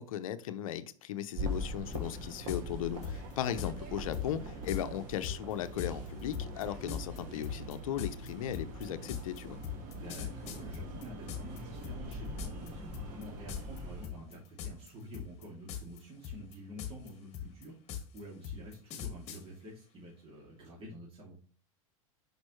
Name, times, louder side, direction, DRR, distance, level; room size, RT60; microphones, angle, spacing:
voice 1, 0.0-9.6, left 10 dB, 80° left, 12 dB, 0.6 m, -37 dB
sound 1, 1.4-14.1, equal, 50° right, 1.7 m, -42 dB
sound 2, 1.9-2.0 2.5-2.6 3.0-3.7 4.1-4.3 4.7-4.8 5.2-11.6 11.8-12.7 12.9-13.2 13.5-13.8 14.0-14.9 15.1-16.0 16.2-19.4, left 10 dB, 40° left, 1.6 m, -39 dB
voice 2, 9.9-21.4, equal, 35° right, -4 dB, 2.6 m, -48 dB
6.1 x 5.3 x 3.1 m, 0.40 s
hypercardioid pair, 105°, 17 cm